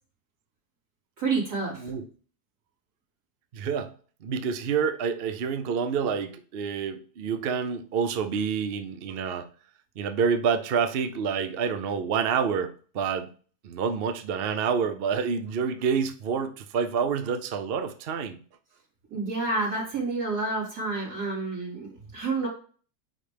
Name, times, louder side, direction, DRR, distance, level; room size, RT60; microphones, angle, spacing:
voice 1, 1.2-1.8 19.1-22.5, right 3 dB, 85° right, -5 dB, 3.9 m, -29 dB
voice 2, 3.5-3.9 4.2-9.5 10.0-13.3 13.6-18.4, right 6 dB, 55° right, 8 dB, 0.6 m, -28 dB
9.4 x 3.3 x 3.4 m, 0.41 s
omnidirectional pair, 1.7 m